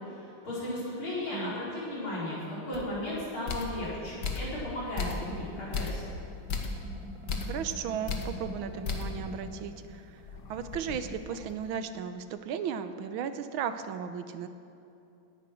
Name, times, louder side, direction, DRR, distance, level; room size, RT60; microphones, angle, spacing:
voice 1, 0.0-6.0, left 1 dB, 75° left, -7 dB, 5.6 m, -35 dB
sound 1, 2.7-2.9 3.5-3.8 4.2-4.6 5.0-5.4 5.7-6.1 6.5-6.8 7.3-7.6 8.1-8.3 8.8-9.2 9.6-9.7 10.1-11.6, left 4 dB, 55° left, 1.8 m, -35 dB
sound 2, 5.5-9.9 10.2-10.3 10.6-11.2, equal, 15° right, 2.1 m, -45 dB
voice 2, 7.5-10.2 10.5-14.5, right 8 dB, 80° right, 10 dB, 1.5 m, -35 dB
17.5 x 10.5 x 6.3 m, 2.7 s
omnidirectional pair, 2.3 m